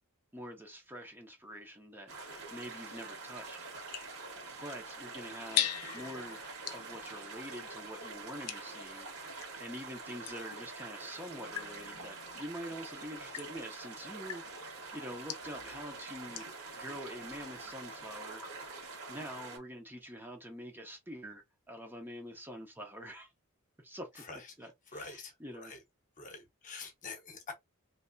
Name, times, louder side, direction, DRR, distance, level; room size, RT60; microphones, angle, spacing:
voice 1, 0.3-2.1 2.5-4.2 4.6-6.4 6.7-9.1 9.6-16.5 16.7-18.4 19.1-23.3 23.8-25.7, equal, 10° right, 0.7 m, -46 dB
sound 1, 2.1-19.6, right 3 dB, 75° right, 1.8 m, -46 dB
sound 2, 2.3-9.6 10.2-16.7, left 11 dB, 90° left, 0.5 m, -42 dB
voice 2, 24.9-25.8 26.2-27.5, left 4 dB, 35° left, 1.0 m, -46 dB
3.2 x 2.8 x 2.6 m
head